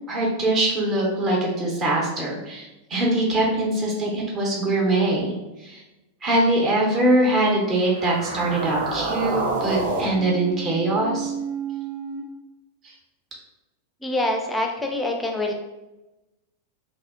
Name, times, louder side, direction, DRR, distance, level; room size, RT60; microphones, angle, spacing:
voice 1, 0.1-5.3 5.6-5.8 6.2-11.3, right 1 dB, 30° right, -3 dB, 0.7 m, -22 dB
sound 1, 7.8-12.2, right 3 dB, 60° right, 0.5 m, -29 dB
voice 2, 14.0-15.5, left 1 dB, 10° left, 2 dB, 0.4 m, -25 dB
2.6 x 2.0 x 2.5 m, 1.0 s
figure-of-eight pair, 90°, 0 cm